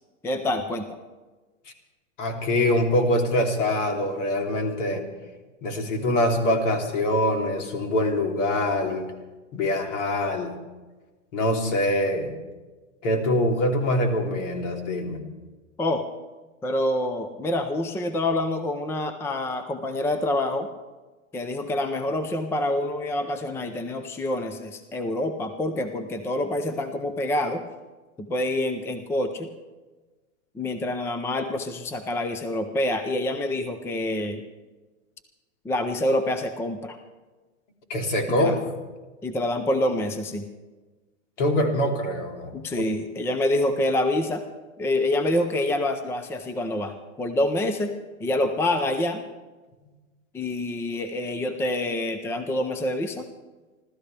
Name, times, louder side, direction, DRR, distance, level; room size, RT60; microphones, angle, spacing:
voice 1, 0.2-1.0 15.8-16.0 16.6-20.7 21.3-27.6 28.2-29.5 30.5-34.4 35.6-37.0 38.4-38.5 39.2-40.5 42.5-44.4 44.8-47.9 48.2-49.2 50.3-53.3, left 1 dB, 5° left, 8 dB, 0.6 m, -26 dB
voice 2, 2.2-5.0 5.6-9.1 9.5-10.5 11.3-12.3 13.0-15.2 37.9-38.6 41.4-42.8, left 1 dB, 65° left, 2 dB, 3.2 m, -24 dB
29.5 x 13.0 x 3.4 m, 1.2 s
hypercardioid pair, 135°, 39 cm